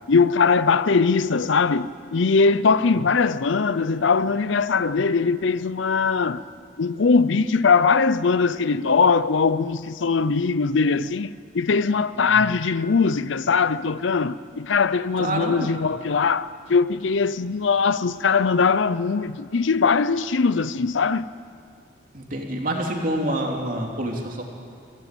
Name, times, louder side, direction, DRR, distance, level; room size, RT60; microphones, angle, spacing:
voice 1, 0.1-6.4 6.8-21.3, left 5 dB, 75° left, 0.6 m, -21 dB
voice 2, 15.2-15.7 22.1-24.4, right 1 dB, 45° right, 3.0 m, -27 dB
24.0 x 16.5 x 9.2 m
head